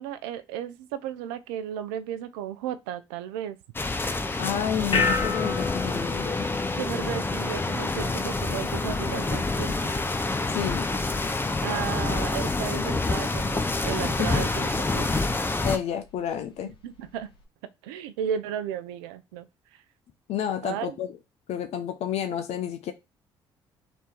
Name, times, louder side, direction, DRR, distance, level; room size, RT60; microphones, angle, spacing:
voice 1, 0.0-3.6 6.8-9.9 11.6-15.3 16.6-17.3 17.8-19.5 20.6-21.0, right 9 dB, 80° right, 0.5 m, -34 dB
sound 1, 3.7-15.8, left 3 dB, 20° left, 0.7 m, -28 dB
voice 2, 4.4-6.5 10.5-10.9 14.2-14.7 15.6-16.7 20.3-21.1 21.5-22.9, left 9 dB, 65° left, 0.6 m, -30 dB
sound 2, 4.9-17.4, left 4 dB, 45° left, 1.4 m, -35 dB
3.5 x 3.0 x 4.5 m
hypercardioid pair, 50°, 12 cm